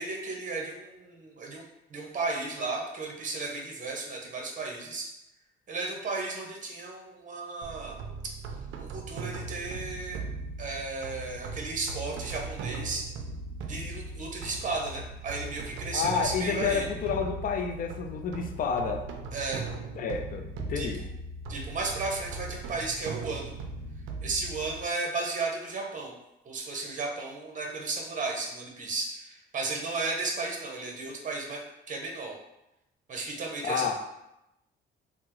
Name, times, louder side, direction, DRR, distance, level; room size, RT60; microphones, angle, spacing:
voice 1, 0.0-5.1 5.7-8.0 8.8-10.2 10.6-13.0 13.6-16.9 19.3-19.6 20.7-21.1 21.5-23.5 24.2-26.1 26.4-32.3 33.1-34.0, right 3 dB, 40° right, 0 dB, 0.7 m, -34 dB
sound 1, 7.6-24.8, right 3 dB, 80° right, 0.4 m, -39 dB
voice 2, 15.9-19.0 20.0-21.0 33.6-34.0, left 6 dB, 45° left, 4 dB, 0.4 m, -30 dB
3.3 x 2.0 x 2.9 m, 0.88 s
cardioid pair, 90°, 20 cm